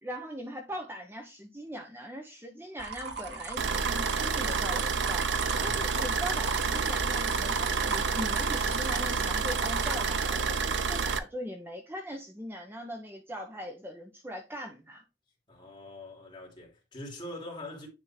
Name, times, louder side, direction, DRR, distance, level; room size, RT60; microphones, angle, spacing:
voice 1, 0.0-5.3 5.6-15.0, equal, 10° right, 0.9 m, -40 dB
sound 1, 2.8-10.1, right 3 dB, 70° right, 1.4 m, -37 dB
sound 2, 3.6-11.2, right 5 dB, 85° right, 0.8 m, -29 dB
voice 2, 15.5-17.9, left 1 dB, 25° left, 3.0 m, -43 dB
9.9 x 3.6 x 4.4 m
head